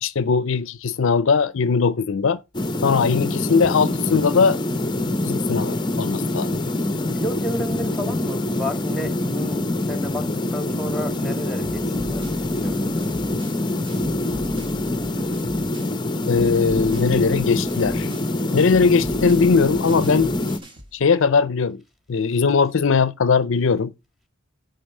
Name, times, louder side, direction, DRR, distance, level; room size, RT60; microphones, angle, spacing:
voice 1, 0.0-2.4 2.8-4.6 5.2-6.5 16.3-18.1 18.5-20.3 20.9-21.8 22.1-23.9, left 5 dB, 65° left, 0.5 m, -19 dB
sound 1, 2.5-20.6, left 1 dB, 20° left, 0.7 m, -25 dB
voice 2, 7.1-12.9, equal, ahead, 2.0 m, -31 dB
sound 2, 11.6-16.0 16.3-21.0, equal, 25° right, 1.6 m, -41 dB
10.0 x 3.9 x 6.3 m
head